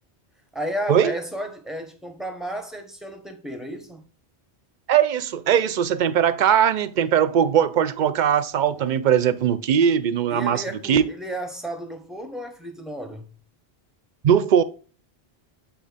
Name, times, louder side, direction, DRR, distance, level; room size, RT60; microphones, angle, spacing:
voice 1, 0.5-4.0 10.3-13.3, equal, ahead, 1.0 m, -33 dB
voice 2, 4.9-10.6 10.9-11.0 14.2-14.6, right 8 dB, 55° right, 0.6 m, -20 dB
8.5 x 3.0 x 5.0 m
omnidirectional pair, 1.0 m